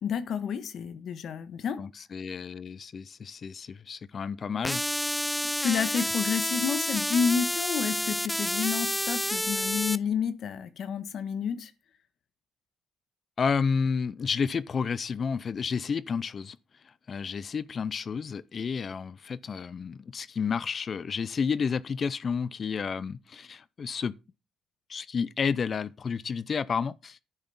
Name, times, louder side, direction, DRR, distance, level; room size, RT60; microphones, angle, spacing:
voice 1, 0.0-1.8 5.6-11.7, left 7 dB, 65° left, 1.5 m, -30 dB
voice 2, 1.8-5.2 13.4-16.6 16.8-24.2 24.9-27.2, left 6 dB, 45° left, 0.5 m, -31 dB
sound 1, 4.6-10.0, equal, 5° left, 0.6 m, -29 dB
10.5 x 6.0 x 7.0 m
cardioid pair, 90°, 0 cm